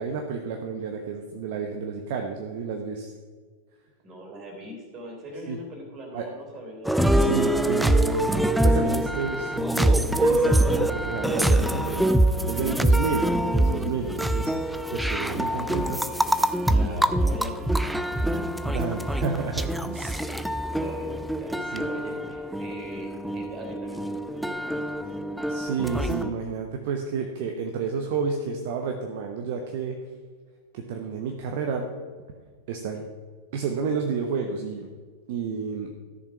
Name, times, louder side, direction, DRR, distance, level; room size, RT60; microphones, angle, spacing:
voice 1, 0.0-3.1 5.5-5.6 6.1-6.2 7.1-12.1 12.5-16.0 16.7-17.0 18.6-20.2 21.7-21.9 25.5-30.0 30.7-31.9 32.7-33.0 33.5-34.9 35.3-35.9, right 5 dB, 50° right, 3 dB, 1.0 m, -30 dB
voice 2, 4.0-7.1 12.6-13.3 15.3-16.0 16.7-18.5 19.9-20.4 20.6-25.1, equal, 30° right, 2 dB, 3.6 m, -42 dB
sound 1, 6.8-26.3, right 1 dB, ahead, 0.5 m, -24 dB
13.5 x 7.0 x 5.7 m, 1.5 s
figure-of-eight pair, 90°, 0 cm